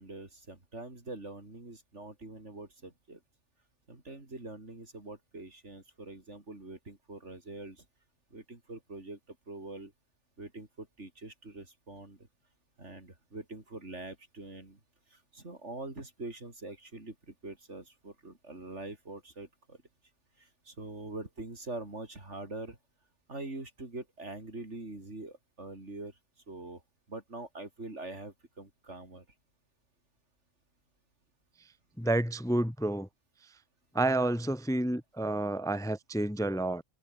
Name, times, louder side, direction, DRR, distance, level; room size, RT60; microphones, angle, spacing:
voice 1, 0.0-3.2 3.9-7.8 8.3-9.9 10.4-12.2 12.8-14.8 15.1-19.8 20.4-22.8 23.3-26.1 26.5-26.8 27.1-29.2, right 2 dB, 85° right, 4.9 m, -44 dB
voice 2, 32.0-33.1 33.9-36.8, right 1 dB, 5° left, 0.7 m, -29 dB
omnidirectional pair, 1.2 m